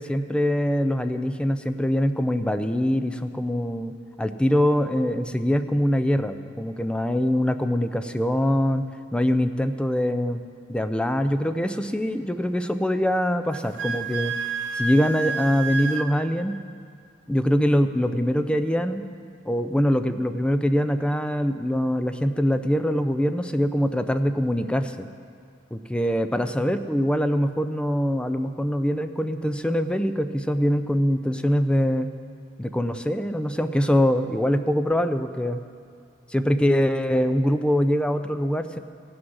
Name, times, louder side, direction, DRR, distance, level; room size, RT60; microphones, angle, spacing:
voice 1, 0.0-3.9 4.2-8.9 9.1-10.4 10.7-14.3 14.8-16.6 17.3-19.0 19.5-25.1 25.7-32.1 32.6-35.6 36.3-38.8, equal, 5° left, 9 dB, 0.4 m, -23 dB
Wind instrument woodwind instrument, 13.5-16.1, right 4 dB, 85° right, 0.7 m, -29 dB
16.0 x 6.1 x 6.3 m, 2.2 s
head